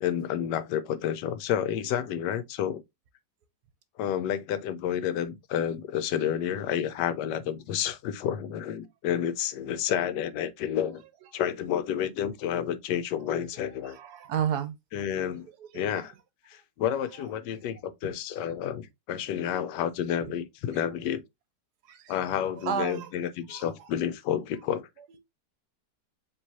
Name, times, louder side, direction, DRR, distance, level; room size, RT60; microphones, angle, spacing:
voice 1, 0.0-2.8 4.0-11.0 11.3-14.0 14.9-15.5 15.7-16.1 16.5-21.2 22.1-24.9, left 9 dB, 85° left, 1.2 m, -30 dB
voice 2, 13.8-14.7 15.6-16.1 17.1-17.3 18.0-18.1 18.4-18.5 20.1-20.3 21.9-22.2 22.6-23.1 23.5-23.9, right 8 dB, 75° right, 1.2 m, -33 dB
4.6 x 3.0 x 2.7 m
omnidirectional pair, 1.8 m